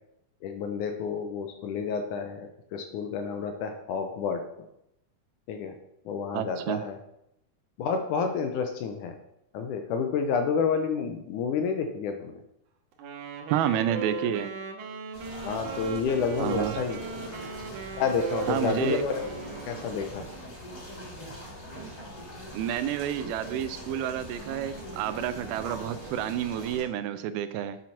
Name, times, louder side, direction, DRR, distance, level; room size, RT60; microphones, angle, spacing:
voice 1, 0.4-4.4 5.5-5.8 6.1-7.0 7.8-9.2 9.5-12.4 15.4-17.0 18.0-20.2, left 5 dB, 75° left, 6 dB, 2.0 m, -29 dB
voice 2, 6.3-6.8 13.5-14.5 16.4-16.8 18.5-19.0 22.5-27.8, right 10 dB, 90° right, 12 dB, 2.6 m, -29 dB
Wind instrument woodwind instrument, 13.0-20.2, right 5 dB, 65° right, 2.3 m, -38 dB
sound 1, 15.1-26.8, equal, 25° left, 3.3 m, -42 dB
7.6 x 7.4 x 5.7 m, 0.79 s
omnidirectional pair, 4.2 m